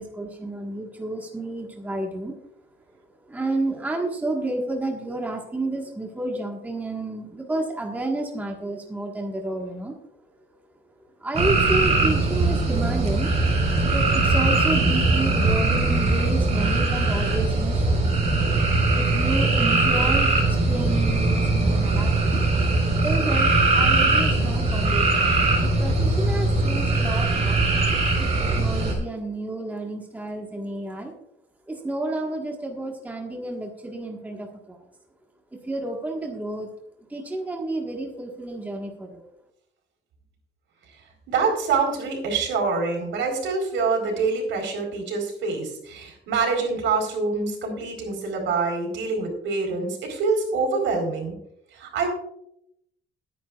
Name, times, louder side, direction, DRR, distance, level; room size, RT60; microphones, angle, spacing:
voice 1, 0.0-2.3 3.3-10.0 11.2-13.3 13.8-17.9 18.9-20.3 20.7-22.4 23.0-25.3 25.6-27.6 28.2-31.1 31.7-34.8 35.7-36.7 37.1-39.2, right 2 dB, 10° right, 0 dB, 1.5 m, -30 dB
sound 1, 11.3-28.9, right 2 dB, 35° right, 4.3 m, -21 dB
voice 2, 41.3-51.3 51.7-52.1, right 4 dB, 75° right, 2 dB, 4.3 m, -25 dB
21.5 x 9.6 x 2.4 m, 0.76 s
cardioid pair, 175°, 20 cm